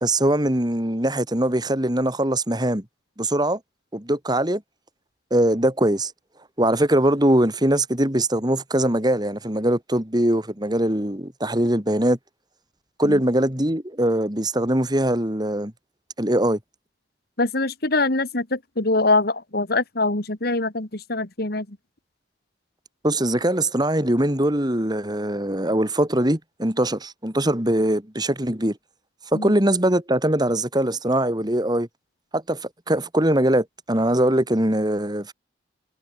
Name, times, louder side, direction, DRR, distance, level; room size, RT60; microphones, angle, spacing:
voice 1, 0.0-2.8 3.2-3.6 3.9-4.6 5.3-6.1 6.6-12.2 13.0-15.7 16.2-16.6 23.0-28.8 29.3-31.9 32.3-32.6 32.9-35.3, right 1 dB, 20° right, 3.0 m, -22 dB
voice 2, 17.4-21.8 29.3-29.5, left 2 dB, 55° left, 2.4 m, -23 dB
head